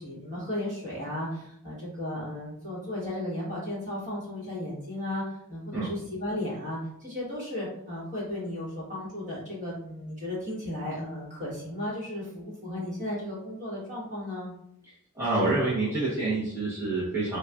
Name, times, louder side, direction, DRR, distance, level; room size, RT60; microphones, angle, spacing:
voice 1, 0.0-5.2 5.5-14.5, left 1 dB, 35° right, -6 dB, 1.2 m, -35 dB
voice 2, 15.1-17.4, right 2 dB, 10° right, -11 dB, 0.8 m, -27 dB
3.9 x 2.3 x 2.2 m, 0.74 s
head